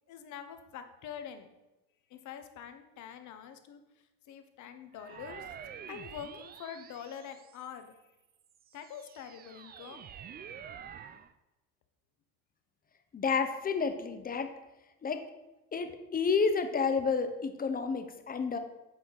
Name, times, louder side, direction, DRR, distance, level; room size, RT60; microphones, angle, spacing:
voice 1, 0.1-1.5 2.1-3.8 4.3-5.5 5.9-8.0 8.7-10.1, left 8 dB, 55° left, 8 dB, 0.9 m, -45 dB
sound 1, 4.9-7.9 8.5-11.3, right 8 dB, 30° right, 0.3 m, -48 dB
voice 2, 13.1-14.5 15.0-15.2 15.7-18.6, left 5 dB, 25° left, 8 dB, 0.7 m, -30 dB
8.3 x 4.5 x 3.9 m, 1.0 s
supercardioid pair, 95°, 36 cm